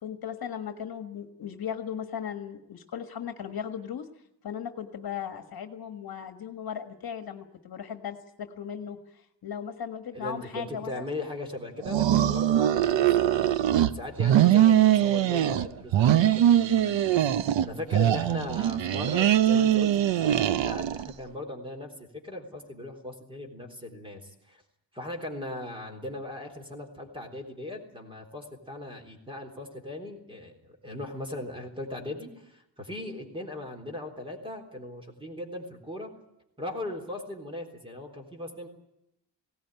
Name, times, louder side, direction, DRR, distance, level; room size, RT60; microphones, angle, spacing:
voice 1, 0.0-4.1 4.4-11.1, left 8 dB, 55° left, 7 dB, 1.6 m, -37 dB
voice 2, 10.1-13.4 13.8-24.6 24.9-36.1 36.6-38.7, left 1 dB, 10° right, 2 dB, 3.6 m, -38 dB
sound 1, 11.8-13.9 14.2-15.7 15.9-17.7 17.9-21.1, right 11 dB, 85° right, 0.9 m, -22 dB
20.0 x 17.5 x 9.0 m, 0.84 s
wide cardioid pair, 180°, 43 cm